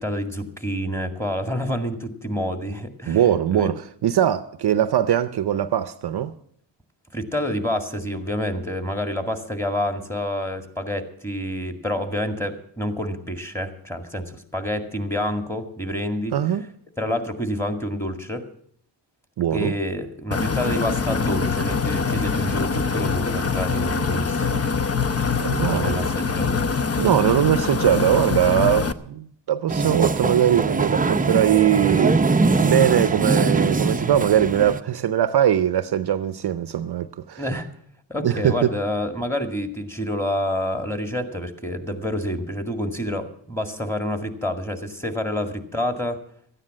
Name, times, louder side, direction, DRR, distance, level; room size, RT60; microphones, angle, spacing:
voice 1, 0.0-3.2 3.5-3.7 7.1-16.3 17.0-18.5 19.5-24.6 25.8-26.6 37.4-37.7 38.1-46.2, left 1 dB, 5° left, 2.0 m, -28 dB
voice 2, 3.1-6.3 16.3-16.6 19.4-19.7 25.4-26.1 27.0-32.2 32.6-37.4 38.2-38.7, right 10 dB, 55° right, 0.7 m, -21 dB
sound 1, 20.3-28.9, left 5 dB, 30° left, 0.8 m, -24 dB
sound 2, 29.7-34.8, right 3 dB, 20° right, 0.7 m, -22 dB
13.5 x 9.8 x 7.5 m
cardioid pair, 85°, 47 cm